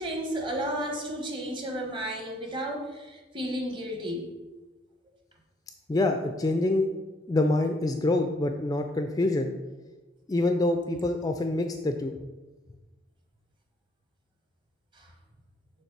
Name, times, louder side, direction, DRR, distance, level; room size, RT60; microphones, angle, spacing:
voice 1, 0.0-4.3 15.0-15.1, equal, 25° right, 2 dB, 1.0 m, -33 dB
voice 2, 5.9-6.9 7.3-9.5 10.3-12.1, left 2 dB, 20° left, 5 dB, 0.3 m, -26 dB
7.0 x 3.2 x 5.9 m, 1.2 s
head